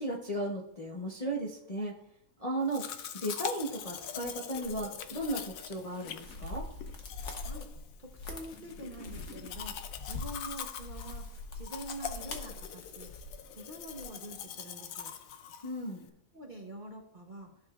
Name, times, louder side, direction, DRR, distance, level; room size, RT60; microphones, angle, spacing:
voice 1, 0.0-1.9 2.4-2.9 3.1-6.7 15.6-16.1, right 1 dB, 30° left, -3 dB, 0.7 m, -35 dB
Domestic sounds home sounds, 2.7-16.1, left 8 dB, 65° left, 0.9 m, -43 dB
sound 1, 4.6-14.0, left 2 dB, 50° left, 1.2 m, -44 dB
voice 2, 8.0-13.1 13.5-15.1 16.3-17.5, right 1 dB, 35° right, 0 dB, 0.9 m, -46 dB
14.5 x 5.0 x 2.4 m, 0.80 s
omnidirectional pair, 1.7 m